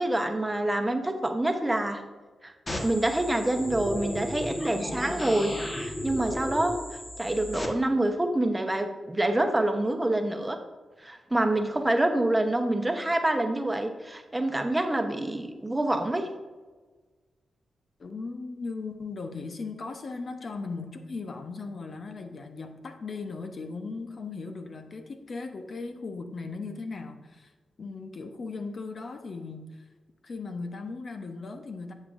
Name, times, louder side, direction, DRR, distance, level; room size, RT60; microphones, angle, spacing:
voice 1, 0.0-2.0 2.4-2.5 2.8-6.8 7.2-10.6 11.0-16.3, right 1 dB, 15° right, 5 dB, 1.0 m, -26 dB
sound 1, 2.7-7.7, left 1 dB, 35° left, 1.6 m, -34 dB
voice 2, 18.0-27.5 27.8-29.8 30.2-31.9, left 4 dB, 55° left, 6 dB, 0.8 m, -37 dB
11.0 x 7.4 x 2.6 m, 1.3 s
cardioid pair, 65°, 0 cm